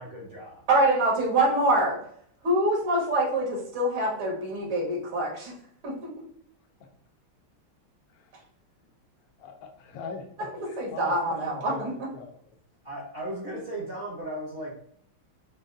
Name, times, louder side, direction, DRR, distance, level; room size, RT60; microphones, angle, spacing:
voice 1, 0.0-0.6 12.8-14.8, right 1 dB, 50° right, -4 dB, 0.7 m, -36 dB
voice 2, 0.7-2.0 2.4-5.5 5.8-6.0 10.8-11.9, right 1 dB, 80° right, -3 dB, 2.1 m, -25 dB
voice 3, 9.4-11.8 12.1-12.5, left 5 dB, 65° left, 4 dB, 0.9 m, -41 dB
6.2 x 2.2 x 2.6 m, 0.63 s
omnidirectional pair, 2.3 m